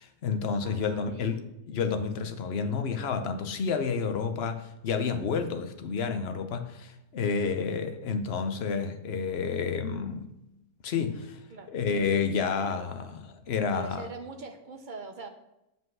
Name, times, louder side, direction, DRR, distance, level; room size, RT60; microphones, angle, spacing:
voice 1, 0.0-1.4 1.7-10.3 10.8-11.3 11.7-14.1, left 5 dB, 50° left, 0.9 m, -30 dB
voice 2, 0.6-1.4 11.5-11.7 13.7-15.3, right 4 dB, 40° right, 0.8 m, -43 dB
7.5 x 5.5 x 6.2 m
omnidirectional pair, 1.6 m